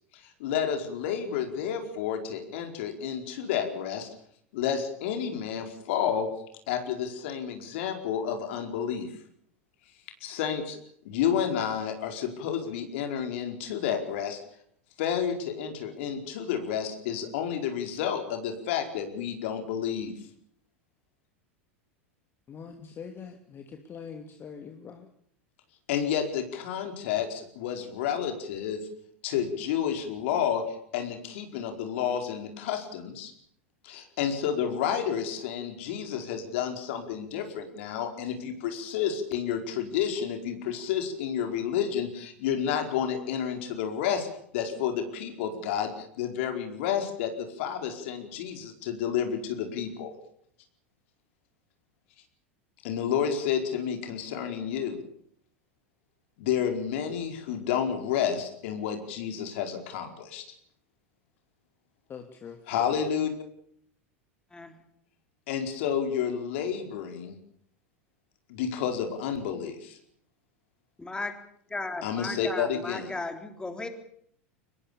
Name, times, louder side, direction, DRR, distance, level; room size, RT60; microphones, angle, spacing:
voice 1, 0.4-4.1 4.5-6.3 6.7-9.1 10.2-10.8 11.0-14.4 15.0-20.1 25.9-28.8 29.2-30.6 30.9-33.3 33.8-44.3 44.5-50.1 52.8-55.0 56.4-60.4 62.7-63.3 65.5-67.3 68.5-70.0 72.0-73.1, left 8 dB, 65° left, 6 dB, 4.8 m, -30 dB
voice 2, 22.5-25.1 62.1-62.9, left 6 dB, 30° left, 5 dB, 2.9 m, -43 dB
voice 3, 71.0-71.3 71.7-73.9, left 2 dB, 10° left, 7 dB, 3.8 m, -35 dB
24.5 x 21.5 x 7.1 m, 0.66 s
hypercardioid pair, 90°, 7 cm